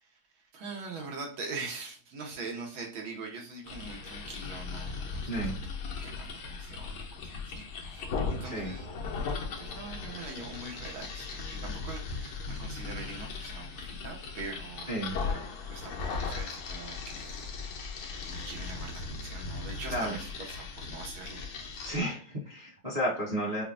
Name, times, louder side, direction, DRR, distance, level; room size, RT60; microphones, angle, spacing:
voice 1, 0.5-5.6 6.0-8.9 9.6-14.9 15.7-21.4, right 4 dB, 75° right, 0 dB, 1.8 m, -43 dB
sound 1, 3.6-22.0, left 4 dB, 80° left, 1.5 m, -38 dB
voice 2, 5.3-5.6 8.4-8.7 14.9-15.1 19.9-20.2 21.8-23.6, right 1 dB, 25° right, -6 dB, 0.9 m, -32 dB
5.6 x 2.2 x 2.5 m, 0.38 s
omnidirectional pair, 2.3 m